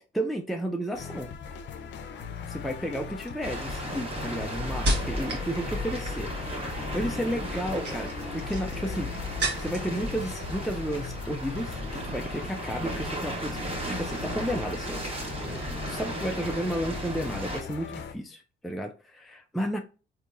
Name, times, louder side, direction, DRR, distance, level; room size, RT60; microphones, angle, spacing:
voice 1, 0.1-1.3 2.5-6.3 6.9-9.1 9.6-15.0 15.9-19.8, equal, ahead, 0.3 m, -32 dB
sound 1, 0.9-18.1, left 6 dB, 65° left, 0.6 m, -39 dB
sound 2, 2.0-2.4 3.1-5.5 5.8-6.3 7.5-10.0 10.3-10.9 11.2-11.5, right 1 dB, 60° right, 1.2 m, -34 dB
sound 3, 3.4-17.6, equal, 30° right, 1.2 m, -35 dB
3.9 x 2.7 x 2.5 m
cardioid pair, 90°, 20 cm